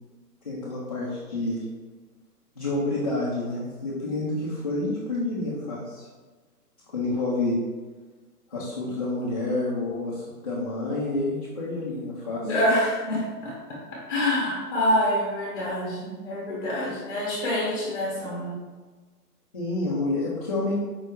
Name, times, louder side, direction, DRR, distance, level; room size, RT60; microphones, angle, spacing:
voice 1, 0.4-1.6 2.6-6.0 6.9-7.6 8.5-12.4 19.5-20.8, left 2 dB, 25° left, -8 dB, 0.5 m, -28 dB
voice 2, 12.4-13.5 14.1-18.5, left 1 dB, 10° left, -6 dB, 1.0 m, -26 dB
5.3 x 2.6 x 3.5 m, 1.3 s
hypercardioid pair, 155°, 47 cm